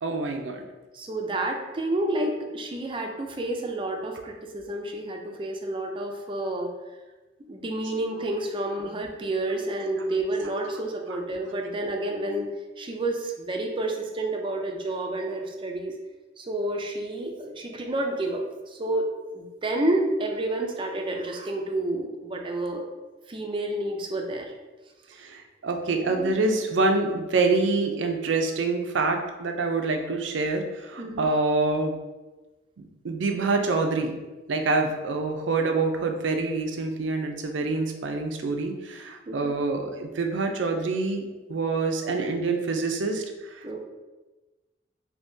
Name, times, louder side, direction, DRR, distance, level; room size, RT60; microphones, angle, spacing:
voice 1, 0.0-0.6 9.5-9.6 11.1-11.2 25.1-32.0 32.8-34.2 34.5-43.2 43.5-43.8, right 3 dB, 85° right, 4 dB, 0.5 m, -26 dB
voice 2, 0.9-6.7 7.5-12.5 12.8-15.9 16.4-19.1 19.3-22.8 23.3-24.5 26.1-26.4 31.0-31.3 39.3-39.5 43.6-43.8, right 1 dB, 30° right, 2 dB, 0.4 m, -29 dB
3.5 x 2.8 x 2.7 m, 1.2 s
head